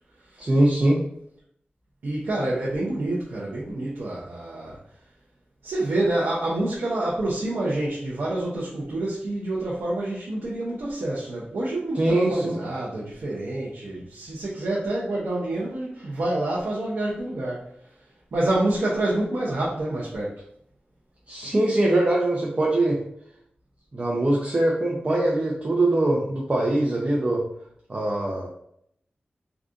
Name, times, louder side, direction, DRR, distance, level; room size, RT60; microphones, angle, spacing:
voice 1, 0.4-1.0 11.9-12.6 21.3-23.0 23.9-27.4 27.9-28.5, right 1 dB, 40° right, -3 dB, 0.6 m, -22 dB
voice 2, 2.0-4.8 5.6-17.7 18.3-20.3, right 1 dB, 90° right, -7 dB, 0.6 m, -27 dB
3.8 x 2.4 x 2.5 m, 0.70 s
wide cardioid pair, 60°, 4 cm